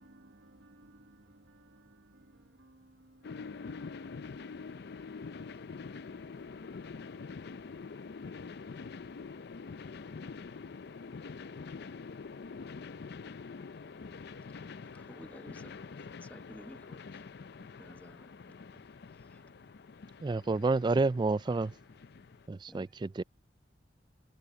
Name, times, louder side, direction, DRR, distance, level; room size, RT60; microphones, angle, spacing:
voice 1, 0.0-5.6 10.8-11.1, right 2 dB, 75° right, 1.3 m, -62 dB
sound 1, 3.2-22.5, left 4 dB, 60° left, 0.5 m, -45 dB
voice 2, 14.9-15.7 16.2-17.3 17.6-18.3 18.7-18.8 19.3-19.4 22.7-22.9, equal, 10° left, 1.4 m, -52 dB
voice 3, 20.2-21.7 22.5-23.2, right 3 dB, 25° right, 0.3 m, -29 dB
head